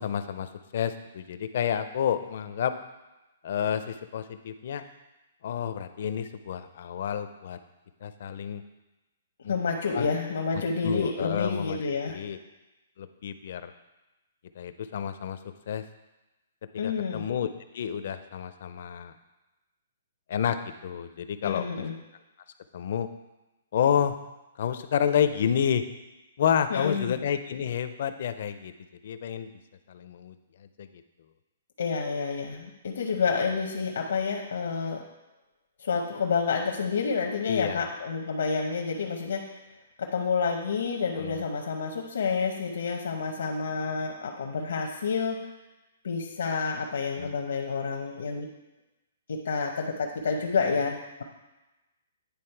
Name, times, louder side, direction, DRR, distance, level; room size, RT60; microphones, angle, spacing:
voice 1, 0.0-2.7 3.4-4.8 5.4-7.6 8.0-8.6 9.4-9.5 9.9-10.1 10.8-12.4 13.0-13.7 14.6-15.4 15.7-15.8 16.8-17.5 17.7-19.1 20.3-20.6 20.8-21.8 22.7-23.1 23.7-24.2 24.6-25.8 26.4-28.7 29.0-29.5 29.9-30.3 30.8-30.9 37.4-37.9 41.2-41.4 47.2-47.3, left 8 dB, 45° left, 10 dB, 0.4 m, -29 dB
voice 2, 9.5-12.2 16.8-17.3 21.4-21.9 26.7-27.2 31.8-35.0 35.8-39.6 40.0-45.5 46.0-48.5 49.3-51.2, left 5 dB, 80° left, 1 dB, 0.8 m, -29 dB
9.5 x 3.5 x 4.5 m, 1.0 s
hypercardioid pair, 175°, 0 cm